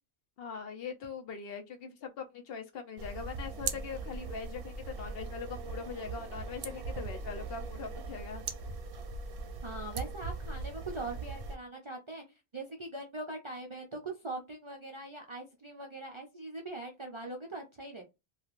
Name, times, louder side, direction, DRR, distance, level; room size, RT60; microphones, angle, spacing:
voice 1, 0.4-8.4, left 6 dB, 65° left, 0.8 m, -42 dB
sound 1, 3.0-11.6, right 4 dB, 65° right, 0.7 m, -40 dB
voice 2, 9.6-12.2 12.5-18.0, right 2 dB, 45° right, 0.4 m, -41 dB
3.1 x 2.4 x 2.4 m
omnidirectional pair, 1.1 m